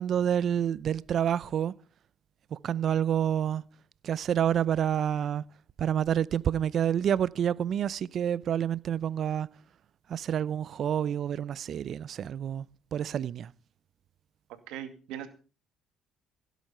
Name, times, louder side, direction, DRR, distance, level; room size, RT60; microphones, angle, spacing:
voice 1, 0.0-1.7 2.5-3.6 4.0-5.4 5.8-9.5 10.1-12.7 12.9-13.5, right 9 dB, 55° right, 0.6 m, -28 dB
voice 2, 14.7-15.3, right 10 dB, 80° right, 2.3 m, -39 dB
16.5 x 8.3 x 5.6 m
supercardioid pair, 75°, 0 cm